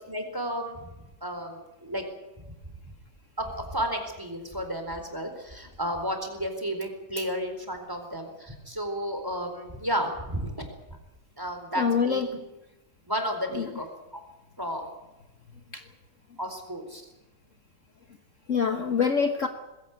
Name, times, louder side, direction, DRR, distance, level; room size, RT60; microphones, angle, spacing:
voice 1, 0.1-0.9 1.2-2.0 3.4-10.6 11.4-12.2 13.1-13.9 14.1-14.2 14.6-14.9 16.4-17.0, equal, 10° right, 5 dB, 4.3 m, -32 dB
voice 2, 11.8-12.3 13.5-13.7 15.7-15.8 18.5-19.5, left 6 dB, 50° left, 7 dB, 1.4 m, -25 dB
21.0 x 16.5 x 9.6 m, 1.0 s
omnidirectional pair, 1.9 m